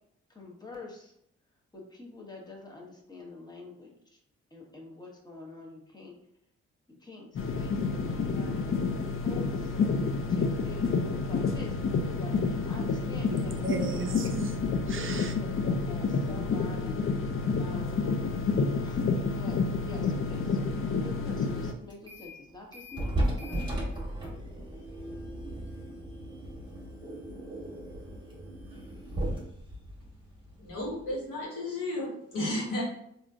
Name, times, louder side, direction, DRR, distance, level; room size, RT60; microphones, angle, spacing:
voice 1, 0.3-1.1 1.7-4.2 4.5-6.2 6.9-14.2 15.3-17.0 17.4-18.3 18.8-19.0 19.4-23.6, left 3 dB, 15° left, -1 dB, 1.0 m, -46 dB
sound 1, 7.4-21.7, left 4 dB, 45° left, 0.5 m, -29 dB
voice 2, 13.3-15.4, right 4 dB, 45° right, 6 dB, 0.5 m, -36 dB
sound 2, 21.9-22.4 22.7-31.2, right 1 dB, 15° right, 1.2 m, -36 dB
voice 3, 30.6-32.8, left 1 dB, 80° left, -4 dB, 1.4 m, -33 dB
3.5 x 2.7 x 2.4 m, 0.75 s
supercardioid pair, 50°, 31 cm